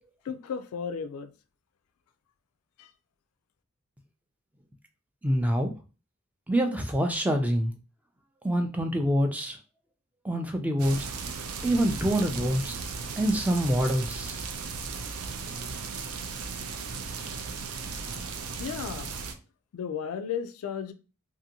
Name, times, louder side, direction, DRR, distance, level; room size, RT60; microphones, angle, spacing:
voice 1, 0.2-1.3 2.8-2.9 18.6-19.1 19.7-20.9, left 7 dB, 80° left, 0.3 m, -34 dB
voice 2, 5.2-5.7 6.5-7.7 8.4-9.6 10.2-11.1 11.6-12.8 13.2-14.4, equal, 5° right, 0.3 m, -26 dB
sound 1, 10.8-19.3, right 5 dB, 85° right, 0.4 m, -36 dB
2.7 x 2.5 x 2.7 m
head